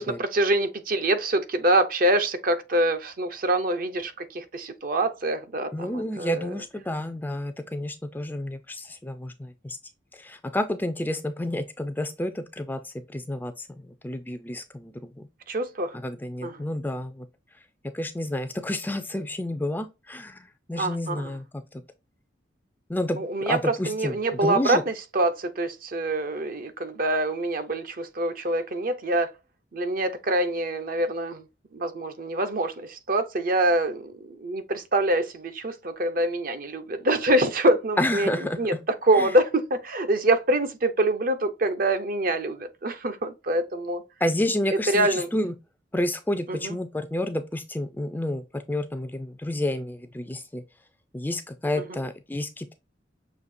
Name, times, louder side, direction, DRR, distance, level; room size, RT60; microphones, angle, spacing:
voice 1, 0.0-6.5 15.5-16.0 16.4-16.6 20.8-21.4 23.2-29.3 29.7-31.5 31.7-38.7 39.0-44.0 44.7-45.3 46.5-46.8, right 1 dB, 50° right, 0.7 m, -25 dB
voice 2, 5.7-9.8 10.1-15.1 15.9-17.3 17.9-21.5 22.9-23.2 23.5-24.2 24.4-24.8 38.0-38.8 39.2-39.3 44.2-45.5 45.9-50.6 51.1-52.7, left 1 dB, 10° left, 0.4 m, -30 dB
6.5 x 2.7 x 2.6 m
head